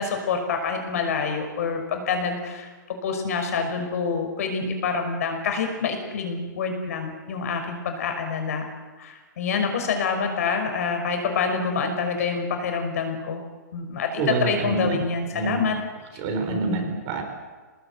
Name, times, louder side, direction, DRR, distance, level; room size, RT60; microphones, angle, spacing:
voice 1, 0.0-8.6 9.0-13.4 13.7-15.8 16.5-16.8, left 5 dB, 50° left, 5 dB, 5.5 m, -27 dB
voice 2, 14.2-15.0 15.3-15.6 16.2-17.2, right 4 dB, 30° right, 4 dB, 4.1 m, -27 dB
25.5 x 19.5 x 8.1 m, 1.4 s
hypercardioid pair, 170°, 10 cm